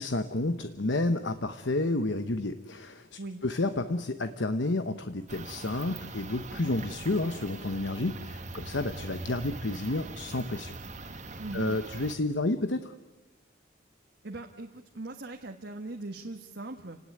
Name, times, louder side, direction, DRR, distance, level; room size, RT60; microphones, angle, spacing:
voice 1, 0.0-10.7 11.5-12.9, left 2 dB, 65° left, 9 dB, 1.0 m, -30 dB
sound 1, 5.3-12.1, right 2 dB, 35° right, 1.8 m, -42 dB
voice 2, 11.4-11.8 14.2-17.0, right 2 dB, 60° right, 2 dB, 1.6 m, -40 dB
29.5 x 18.5 x 9.5 m, 1.1 s
head